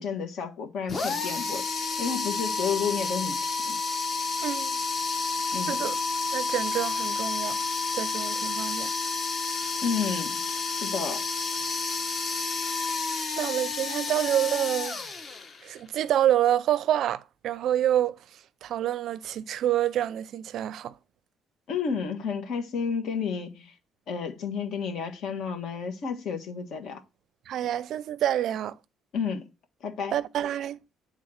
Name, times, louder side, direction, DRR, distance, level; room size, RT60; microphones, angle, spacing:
voice 1, 0.0-3.8 5.5-5.8 9.8-10.4 10.7-11.2 21.7-23.7 24.1-27.0 29.1-29.5 29.8-30.2, left 6 dB, 60° left, 1.6 m, -31 dB
sound 1, 0.9-15.8, left 4 dB, 30° left, 1.0 m, -30 dB
voice 2, 4.4-4.8 5.7-6.0 6.3-7.6 7.9-8.9 13.4-15.0 15.6-18.2 18.6-20.9 27.5-28.7 30.1-30.8, right 11 dB, 55° right, 0.4 m, -27 dB
9.2 x 3.8 x 6.3 m
cardioid pair, 165°, 0 cm